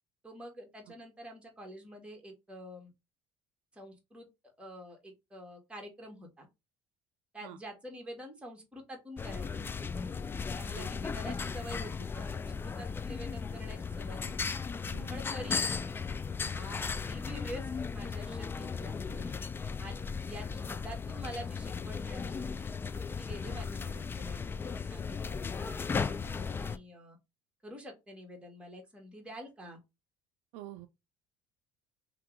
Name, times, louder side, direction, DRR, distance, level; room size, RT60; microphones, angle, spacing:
voice 1, 0.2-2.9 3.7-4.3 4.6-6.5 7.3-9.7 10.6-14.3 15.1-15.7 16.4-19.3 19.8-20.0 20.3-22.7 23.1-27.2 27.6-29.8, equal, 10° right, 1.5 m, -47 dB
sound 1, 9.2-26.8, left 5 dB, 20° left, 0.3 m, -36 dB
voice 2, 30.5-30.9, right 14 dB, 85° right, 0.4 m, -47 dB
3.0 x 2.9 x 3.7 m
cardioid pair, 105°, 10 cm